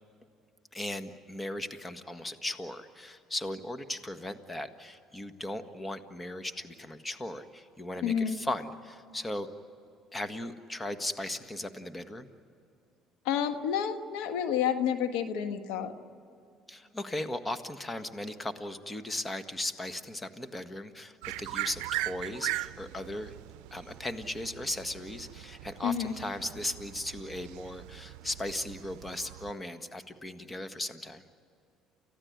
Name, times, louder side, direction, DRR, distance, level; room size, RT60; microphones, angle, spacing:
voice 1, 0.7-9.5 10.1-12.3 16.7-23.3 23.7-31.2, left 1 dB, 15° left, 8 dB, 1.6 m, -37 dB
voice 2, 8.0-8.4 13.2-15.9 25.8-26.1, left 8 dB, 85° left, 8 dB, 1.4 m, -29 dB
white crested laughingthrush, 21.2-29.5, right 17 dB, 85° right, 0.5 m, -40 dB
29.5 x 15.5 x 9.6 m, 2.6 s
supercardioid pair, 85°, 0 cm